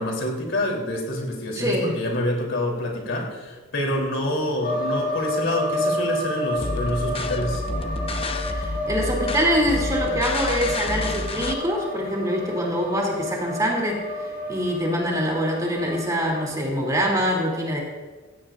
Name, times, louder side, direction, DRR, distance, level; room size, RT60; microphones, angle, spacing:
voice 1, 0.0-7.6, left 1 dB, 65° left, -1 dB, 3.4 m, -27 dB
voice 2, 1.5-2.0 8.5-17.8, equal, 15° right, -1 dB, 2.8 m, -24 dB
sound 1, 4.6-16.6, left 1 dB, 45° left, 2.1 m, -30 dB
sound 2, 6.6-11.6, left 2 dB, 30° left, 0.7 m, -29 dB
16.5 x 16.0 x 2.6 m, 1.3 s
head